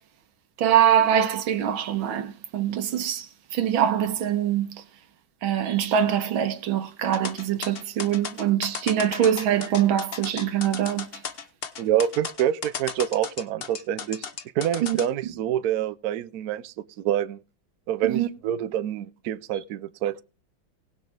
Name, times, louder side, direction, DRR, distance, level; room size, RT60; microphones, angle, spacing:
voice 1, 0.6-3.3 3.5-4.8 5.4-11.1 14.8-15.0 18.0-18.3, right 10 dB, 85° right, 1.8 m, -23 dB
sound 1, 7.1-15.1, left 6 dB, 60° left, 0.6 m, -35 dB
voice 2, 11.8-14.2 14.5-17.4 17.9-20.2, right 10 dB, 70° right, 0.9 m, -27 dB
19.0 x 6.4 x 3.3 m
omnidirectional pair, 2.2 m